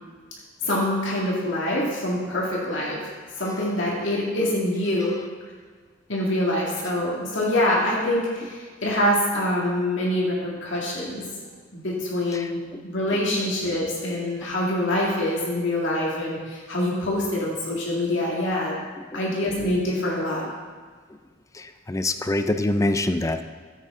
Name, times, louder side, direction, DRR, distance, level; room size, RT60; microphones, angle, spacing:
voice 1, 0.6-3.0 3.4-5.2 6.1-11.2 11.7-18.8 19.1-20.5, left 1 dB, 65° left, -5 dB, 2.2 m, -25 dB
voice 2, 12.3-12.8 13.1-13.2 19.1-19.2 21.5-23.4, left 2 dB, 15° left, 8 dB, 0.4 m, -25 dB
14.0 x 8.3 x 3.7 m, 1.5 s
head